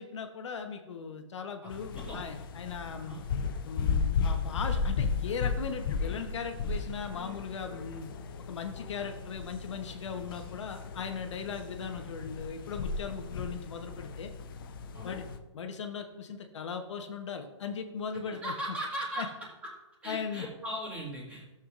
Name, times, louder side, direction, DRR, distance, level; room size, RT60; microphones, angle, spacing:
voice 1, 0.0-3.2 3.6-8.1 8.5-14.3 15.0-15.3 15.5-18.5 19.2-19.3 20.1-20.5, left 6 dB, 75° left, 6 dB, 1.0 m, -38 dB
voice 2, 1.6-2.2 3.1-3.2 14.9-15.1 18.2-19.3 20.0-21.5, right 1 dB, 10° right, -5 dB, 2.2 m, -38 dB
sound 1, 1.7-15.4, left 5 dB, 45° left, 0.6 m, -35 dB
13.5 x 7.1 x 2.5 m, 1.1 s
hypercardioid pair, 155°, 15 cm